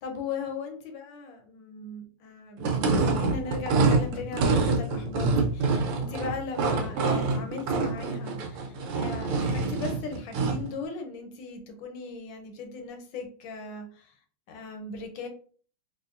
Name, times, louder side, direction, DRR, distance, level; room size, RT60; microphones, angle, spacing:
voice 1, 0.0-14.1 14.5-15.3, left 4 dB, 70° left, 5 dB, 1.3 m, -38 dB
sound 1, 2.6-10.7, right 3 dB, 80° right, 1.6 m, -26 dB
4.2 x 2.5 x 2.5 m, 0.43 s
omnidirectional pair, 2.4 m